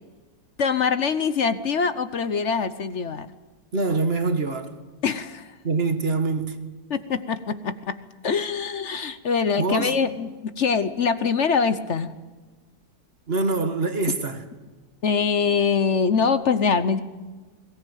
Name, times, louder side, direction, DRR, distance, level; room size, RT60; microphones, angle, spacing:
voice 1, 0.6-3.3 5.0-5.5 6.9-8.0 8.2-12.1 15.0-17.0, left 5 dB, 50° left, 1.1 m, -23 dB
voice 2, 3.7-4.7 5.6-6.6 9.6-9.9 13.3-14.4, right 3 dB, 35° right, 1.7 m, -24 dB
22.0 x 18.0 x 9.2 m
omnidirectional pair, 1.8 m